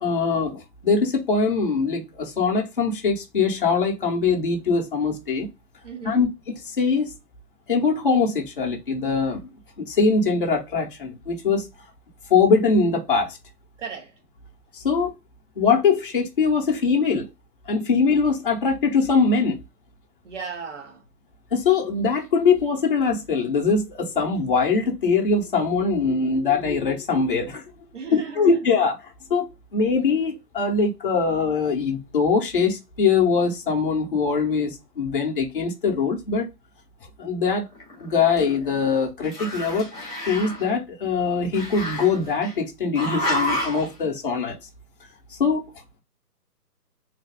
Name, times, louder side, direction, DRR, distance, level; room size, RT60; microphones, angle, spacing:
voice 1, 0.0-5.5 6.0-7.1 7.7-9.4 9.8-11.7 12.3-13.4 14.7-15.1 15.6-17.3 17.7-19.6 21.5-27.6 28.1-29.0 29.3-29.5 29.7-36.4 37.2-37.6 38.0-39.9 40.2-44.5 45.4-45.7, left 5 dB, 35° left, 0.8 m, -22 dB
voice 2, 5.8-6.3 13.8-14.1 20.2-21.0 27.9-28.6, right 5 dB, 50° right, 1.1 m, -35 dB
Growling, 37.7-39.0 39.2-40.7 41.5-42.5 42.9-43.9, left 1 dB, ahead, 0.7 m, -30 dB
3.2 x 2.2 x 3.4 m
hypercardioid pair, 155°, 48 cm